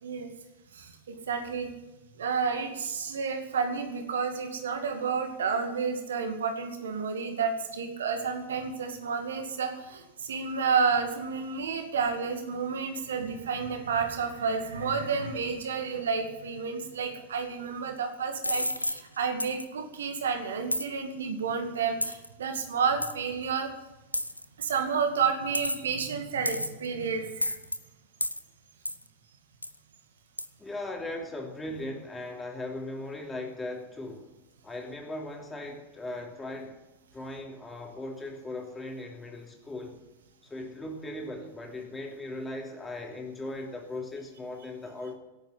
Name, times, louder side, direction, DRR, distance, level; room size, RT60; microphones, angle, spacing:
voice 1, 0.7-1.7 2.2-23.7 24.6-27.5, right 5 dB, 65° right, 5 dB, 2.3 m, -30 dB
sound 1, 18.4-19.0 19.4-19.6 20.7-20.9 22.0-22.3 23.0-23.1 24.1-24.4 25.5-25.9 26.5-26.9 27.4-27.8 28.2-28.4 28.9-29.0 29.6-29.8 30.4-30.5, left 1 dB, 85° left, 0.7 m, -30 dB
voice 2, 30.6-34.3 34.6-36.8 37.1-40.0 40.4-45.1, left 2 dB, 10° left, 1 dB, 3.1 m, -38 dB
17.0 x 9.1 x 7.8 m, 1.0 s
figure-of-eight pair, 90°, 0 cm